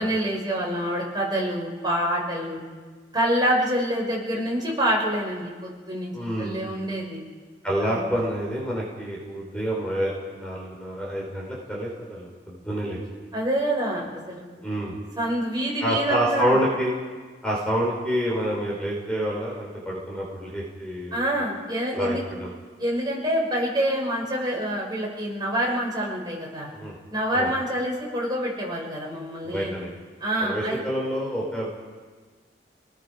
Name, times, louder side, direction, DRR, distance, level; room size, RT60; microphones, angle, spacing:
voice 1, 0.0-2.6 3.1-6.1 6.4-7.2 7.8-8.0 13.3-14.6 15.2-16.6 21.1-22.2 22.8-26.7 27.1-29.7 30.2-30.8, equal, 25° right, -3 dB, 5.7 m, -26 dB
voice 2, 6.1-6.7 7.6-10.1 10.4-13.0 14.6-15.0 15.8-16.9 17.4-21.2 21.9-22.5 26.7-27.0 27.3-27.5 29.4-29.9 30.4-31.7, equal, 5° left, -4 dB, 4.4 m, -27 dB
29.0 x 20.0 x 5.1 m, 1.5 s
head